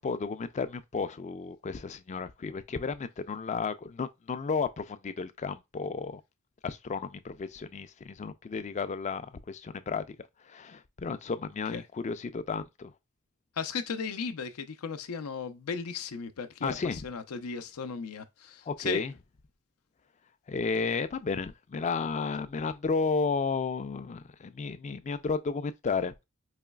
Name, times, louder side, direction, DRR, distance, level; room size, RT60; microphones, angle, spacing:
voice 1, 0.0-6.2 6.6-10.2 10.4-12.9 16.6-17.0 18.7-19.1 20.5-26.3, left 4 dB, 30° left, 0.4 m, -33 dB
voice 2, 13.6-19.0, left 5 dB, 85° left, 0.5 m, -36 dB
4.9 x 3.1 x 2.2 m
head